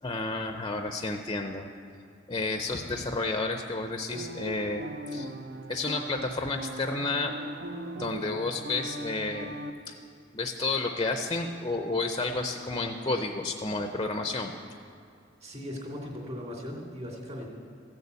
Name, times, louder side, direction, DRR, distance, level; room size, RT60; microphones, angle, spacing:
voice 1, 0.0-1.7 2.3-5.3 5.7-7.3 7.9-9.6 9.9-10.0 10.3-14.5, left 3 dB, 25° left, 5 dB, 0.6 m, -31 dB
sound 1, 4.1-9.7, right 1 dB, 55° right, 0.8 m, -39 dB
voice 2, 15.4-17.5, equal, 35° right, -2 dB, 2.5 m, -38 dB
14.5 x 6.8 x 8.1 m, 2.4 s
head